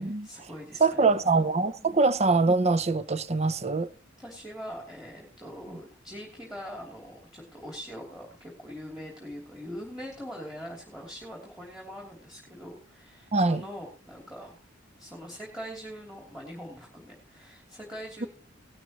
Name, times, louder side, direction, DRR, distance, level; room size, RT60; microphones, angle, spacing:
voice 1, 0.0-1.2 1.8-2.0 4.2-14.6 15.0-18.3, equal, 5° right, 2.9 m, -42 dB
voice 2, 0.8-3.9 13.3-13.6, right 3 dB, 35° right, 0.7 m, -23 dB
18.0 x 12.0 x 3.0 m
head